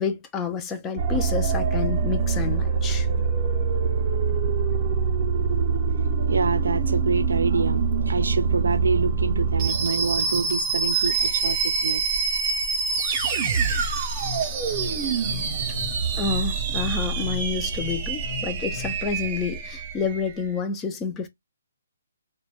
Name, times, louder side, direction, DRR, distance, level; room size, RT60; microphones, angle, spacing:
voice 1, 0.0-3.1 16.1-21.3, left 5 dB, 15° left, 0.4 m, -29 dB
sound 1, 1.0-20.3, right 5 dB, 30° right, 0.5 m, -25 dB
voice 2, 6.2-12.3, right 4 dB, 80° right, 0.3 m, -26 dB
sound 2, 14.0-19.0, left 8 dB, 50° left, 0.9 m, -37 dB
2.1 x 2.1 x 3.0 m
hypercardioid pair, 155°, 0 cm